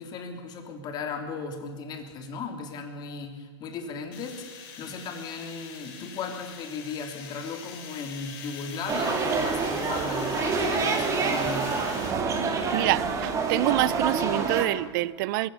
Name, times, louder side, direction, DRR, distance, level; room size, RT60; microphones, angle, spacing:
voice 1, 0.0-11.8, left 4 dB, 30° left, 3.3 m, -36 dB
sound 1, 4.1-12.1, left 7 dB, 50° left, 4.5 m, -43 dB
sound 2, 8.9-14.7, right 4 dB, 20° right, 2.5 m, -27 dB
voice 2, 12.7-15.5, right 18 dB, 45° right, 0.6 m, -26 dB
22.0 x 15.5 x 8.3 m
hypercardioid pair, 140°, 15 cm